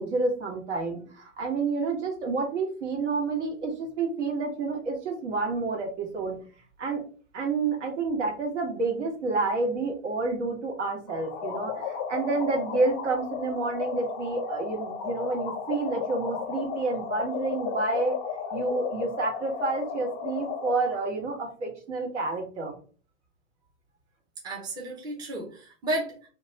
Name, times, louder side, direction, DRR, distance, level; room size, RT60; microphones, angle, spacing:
voice 1, 0.0-6.4 6.8-7.0 7.3-18.2 18.5-22.7, right 3 dB, 65° right, 1 dB, 1.4 m, -29 dB
sound 1, 11.1-21.1, left 7 dB, 30° left, 0.6 m, -34 dB
voice 2, 24.4-26.3, right 1 dB, 10° right, -3 dB, 0.7 m, -33 dB
2.9 x 2.3 x 3.9 m, 0.39 s
hypercardioid pair, 120°, 39 cm